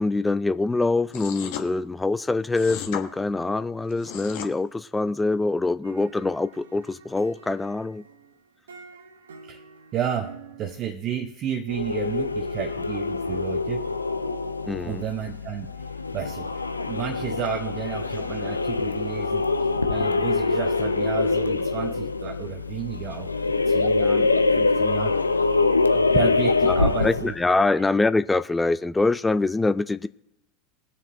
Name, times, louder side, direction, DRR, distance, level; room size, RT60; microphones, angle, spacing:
voice 1, 0.0-8.0 14.7-15.0 26.7-30.1, left 3 dB, 10° left, 0.3 m, -24 dB
sound 1, 1.1-1.7 2.5-3.0 3.9-4.5, left 9 dB, 50° left, 1.1 m, -34 dB
sound 2, 5.8-10.9, right 5 dB, 70° right, 0.8 m, -48 dB
voice 2, 9.9-13.9 14.8-15.7 16.1-19.5 19.9-23.3 23.6-25.2 25.9-27.3 27.7-27.8, right 9 dB, 35° right, 0.8 m, -32 dB
sound 3, 11.7-27.4, left 3 dB, 85° left, 0.4 m, -24 dB
21.0 x 7.2 x 2.6 m
figure-of-eight pair, 85°, 0 cm